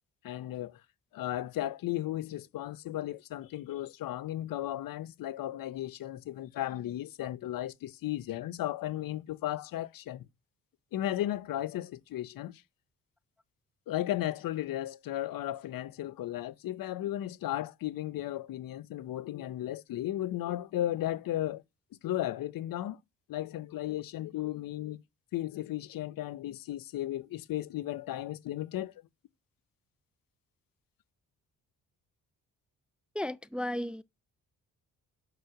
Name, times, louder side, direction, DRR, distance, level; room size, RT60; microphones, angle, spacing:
voice 1, 0.2-0.8 1.1-10.3 10.9-12.6 13.9-21.6 22.0-23.0 23.3-25.0 25.3-28.9, left 13 dB, 80° left, 0.8 m, -35 dB
voice 2, 33.2-34.0, left 1 dB, 5° right, 0.4 m, -34 dB
6.4 x 5.0 x 5.8 m
cardioid pair, 85°, 34 cm